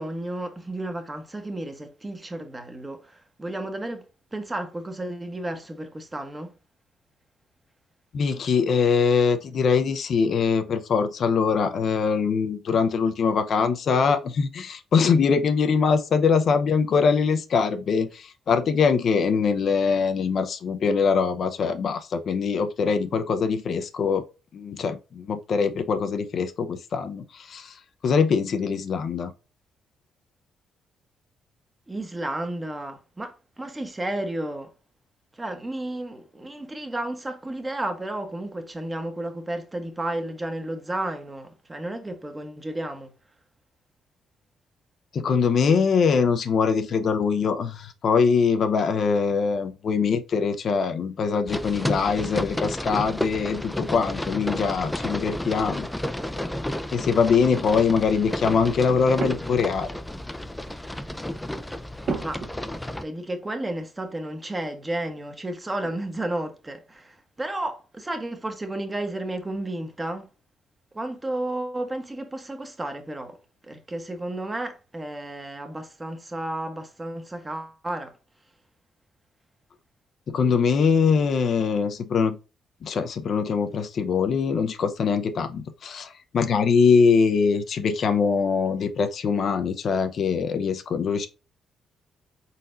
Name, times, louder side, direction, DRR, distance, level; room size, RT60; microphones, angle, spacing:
voice 1, 0.0-4.1 4.3-6.5 31.9-34.7 35.3-43.1 62.2-62.7 63.0-70.3 70.9-73.4 73.6-78.2, right 1 dB, 20° right, 1.0 m, -32 dB
voice 2, 8.1-24.2 24.5-27.7 28.0-29.3 45.1-55.9 56.9-59.9 80.3-82.4 82.8-91.3, left 5 dB, 60° left, 0.6 m, -23 dB
sound 1, 51.5-63.0, left 1 dB, 5° left, 0.4 m, -32 dB
sound 2, 59.2-59.9 60.4-60.7 62.0-63.0 63.4-63.5 65.8-66.2 66.4-67.1, right 4 dB, 65° right, 1.3 m, -35 dB
4.1 x 4.0 x 2.5 m
cardioid pair, 90°, 0 cm